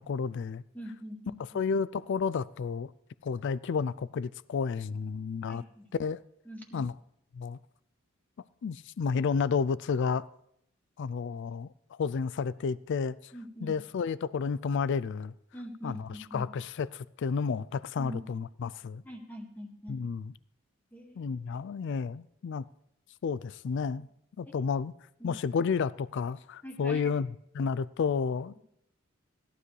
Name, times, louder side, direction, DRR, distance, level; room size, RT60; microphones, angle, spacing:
voice 1, 0.0-0.6 1.5-2.9 3.2-5.6 5.9-6.2 6.7-6.9 7.3-7.6 8.6-10.3 11.0-13.3 13.6-15.3 15.8-19.0 19.9-20.3 21.2-22.6 23.2-24.1 24.4-24.9 25.2-28.6, left 5 dB, 60° left, 0.4 m, -31 dB
voice 2, 0.7-1.6 5.5-5.9 6.5-6.9 13.3-13.8 15.5-16.5 18.0-18.2 19.0-20.0 20.9-21.3 24.5-24.6 25.2-25.4 26.6-27.1, equal, 10° left, 1.9 m, -43 dB
17.0 x 12.0 x 3.3 m
head